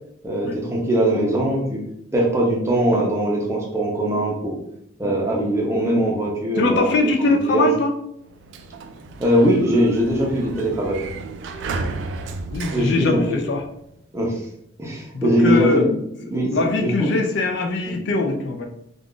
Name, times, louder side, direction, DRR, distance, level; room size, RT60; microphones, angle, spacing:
voice 1, 0.2-1.8 2.1-4.6 5.0-7.7 9.2-11.0 12.7-13.4 14.1-14.4 14.8-15.9 16.3-16.5 16.8-17.1 17.9-18.0, right 1 dB, 15° right, -2 dB, 0.6 m, -21 dB
voice 2, 6.6-7.9 10.4-10.5 11.8-12.0 12.5-13.6 15.1-15.9 16.5-18.7, left 3 dB, 60° left, 3 dB, 0.4 m, -21 dB
Sliding door, 8.2-13.9, right 3 dB, 65° right, 0.3 m, -33 dB
2.4 x 2.3 x 3.7 m, 0.76 s
head